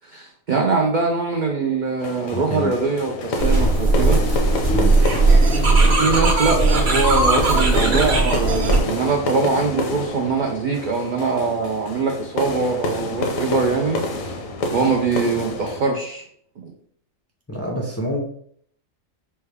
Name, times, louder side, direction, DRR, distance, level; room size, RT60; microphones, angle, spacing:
voice 1, 0.0-4.2 5.8-14.4 14.7-16.2 16.6-16.7, right 4 dB, 80° right, 2 dB, 0.4 m, -23 dB
sound 1, 2.0-15.8, left 2 dB, 80° left, 1.1 m, -29 dB
voice 2, 2.3-2.8 4.7-5.0 17.5-18.2, left 1 dB, 20° left, -2 dB, 0.4 m, -27 dB
sound 2, 3.4-8.8, right 2 dB, 55° right, 1.1 m, -17 dB
5.4 x 2.3 x 3.3 m, 0.64 s
omnidirectional pair, 1.4 m